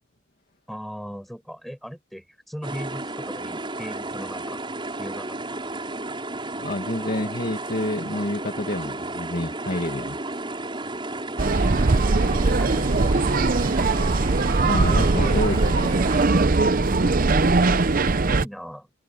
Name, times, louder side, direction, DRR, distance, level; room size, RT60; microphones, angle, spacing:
voice 1, 0.7-4.6 5.0-5.4 12.4-13.4 16.7-17.1 18.2-18.9, equal, ahead, 6.1 m, -38 dB
sound 1, 2.6-16.3, right 2 dB, 25° right, 6.8 m, -33 dB
voice 2, 6.6-10.2 14.6-16.0, left 1 dB, 45° left, 2.3 m, -28 dB
sound 2, 11.4-18.4, right 3 dB, 45° right, 0.7 m, -20 dB
head